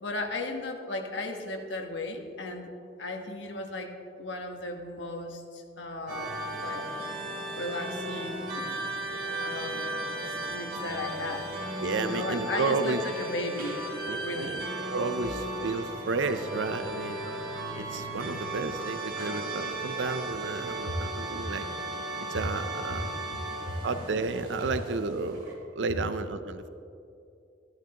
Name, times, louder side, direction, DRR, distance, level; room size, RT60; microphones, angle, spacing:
voice 1, 0.0-2.7 3.0-6.8 7.5-8.7 9.3-9.9 10.2-11.5 12.0-13.8 14.2-14.6 20.9-21.0 21.4-21.5 23.7-23.8, left 2 dB, 85° left, 3 dB, 1.3 m, -36 dB
sound 1, 6.1-25.5, right 1 dB, 50° right, 2.7 m, -36 dB
voice 2, 11.8-13.0 14.0-14.6 14.9-17.2 17.8-21.7 22.3-23.1 23.8-25.5 25.8-26.7, right 3 dB, 85° right, 10 dB, 0.6 m, -32 dB
14.5 x 11.5 x 2.9 m, 2.6 s
head